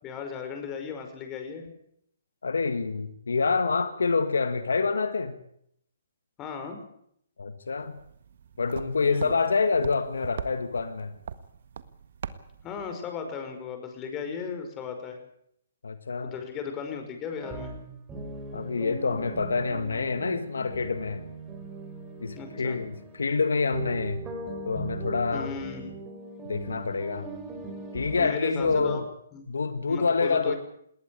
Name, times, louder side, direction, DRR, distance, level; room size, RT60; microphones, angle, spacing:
voice 1, 0.0-1.7 6.4-6.8 9.0-9.4 12.6-15.2 16.2-17.7 22.3-22.8 25.3-25.9 28.1-29.0 29.3-29.4 29.9-30.6, left 6 dB, 20° left, 5 dB, 5.4 m, -36 dB
voice 2, 2.4-5.3 7.4-7.9 8.6-11.2 15.8-16.3 18.5-21.2 22.2-24.2 24.7-25.5 26.5-27.3 27.9-29.0 29.5-30.5, left 4 dB, 85° left, 10 dB, 1.9 m, -27 dB
sound 1, 7.8-13.0, right 7 dB, 60° right, 1.6 m, -42 dB
sound 2, 17.4-29.0, right 3 dB, 15° right, 6.4 m, -39 dB
20.0 x 18.5 x 8.6 m, 0.71 s
hypercardioid pair, 145°, 0 cm